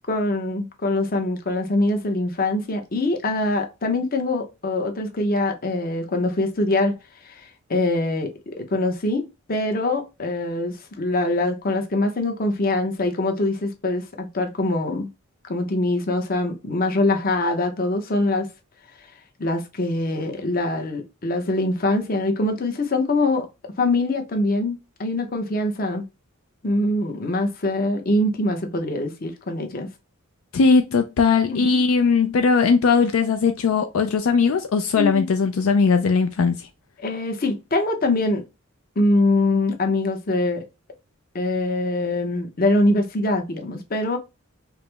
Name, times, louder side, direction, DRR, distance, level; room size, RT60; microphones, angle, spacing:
voice 1, 0.1-7.0 7.2-9.2 9.5-15.1 15.4-18.5 19.4-23.5 23.8-26.0 26.6-29.9 31.5-31.8 35.0-35.3 37.0-38.4 39.0-40.6 41.3-44.2, left 2 dB, 40° left, 0.8 m, -23 dB
voice 2, 30.5-36.7, left 5 dB, 75° left, 0.4 m, -19 dB
4.8 x 2.1 x 3.3 m
head